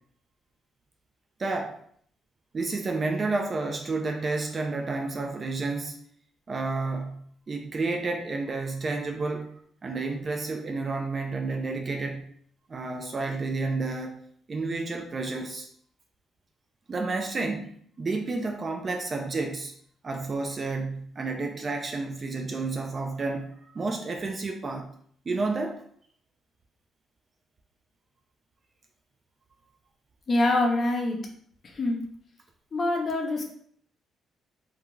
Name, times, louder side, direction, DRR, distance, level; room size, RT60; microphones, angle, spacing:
voice 1, 1.4-1.8 2.5-6.0 6.5-9.5 9.8-12.3 12.7-14.2 14.5-15.7 16.9-17.7 18.0-19.7 20.0-24.9 25.3-25.8, right 3 dB, 35° right, 3 dB, 0.3 m, -30 dB
voice 2, 30.3-31.2 31.7-32.0 32.7-33.4, left 2 dB, 40° left, 1 dB, 0.6 m, -25 dB
2.3 x 2.3 x 2.9 m, 0.62 s
cardioid pair, 90°, 0 cm